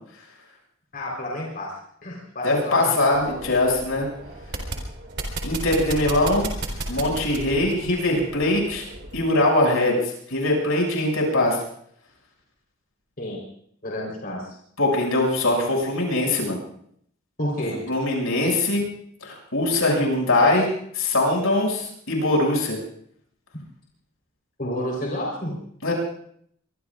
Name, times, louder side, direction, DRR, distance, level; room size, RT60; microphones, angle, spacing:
voice 1, 0.9-2.9 3.3-3.4 6.0-6.1 13.2-13.4 13.8-14.6 17.4-17.9 24.6-25.6, equal, 45° left, -2 dB, 4.1 m, -30 dB
voice 2, 2.4-4.1 5.4-6.5 6.9-8.8 9.1-11.6 14.8-16.6 17.9-18.9 19.2-22.8 25.8-25.9, left 2 dB, 80° left, -1 dB, 6.7 m, -22 dB
sound 1, 3.1-9.3, right 2 dB, 55° right, 3.7 m, -34 dB
24.0 x 23.0 x 2.5 m, 0.65 s
head